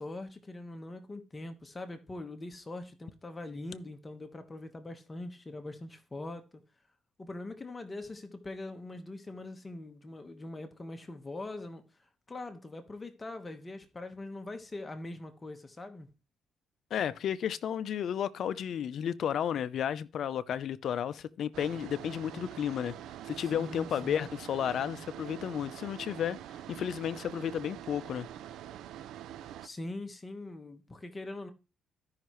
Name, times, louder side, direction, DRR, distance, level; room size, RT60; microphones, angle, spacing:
voice 1, 0.0-6.4 7.2-16.1 23.4-24.3 29.4-31.5, left 2 dB, 25° left, 1.3 m, -42 dB
voice 2, 16.9-22.9 23.3-26.4 26.7-28.3, left 9 dB, 65° left, 0.6 m, -33 dB
sound 1, 21.5-29.7, right 11 dB, 80° right, 0.4 m, -45 dB
14.5 x 5.7 x 3.1 m
cardioid pair, 90°, 0 cm